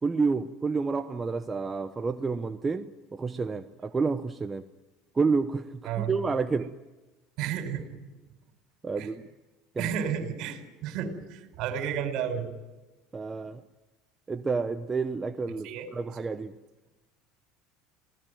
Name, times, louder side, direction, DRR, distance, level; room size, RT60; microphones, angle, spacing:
voice 1, 0.0-4.6 5.1-6.7 8.8-9.3 9.8-9.9 13.1-13.6 14.3-16.5, right 4 dB, 20° right, 8 dB, 0.8 m, -29 dB
voice 2, 7.4-7.8 9.0-9.1 9.8-12.5 15.6-15.9, right 8 dB, 60° right, 7 dB, 4.7 m, -32 dB
26.5 x 18.0 x 9.3 m, 1.1 s
supercardioid pair, 120°, 0 cm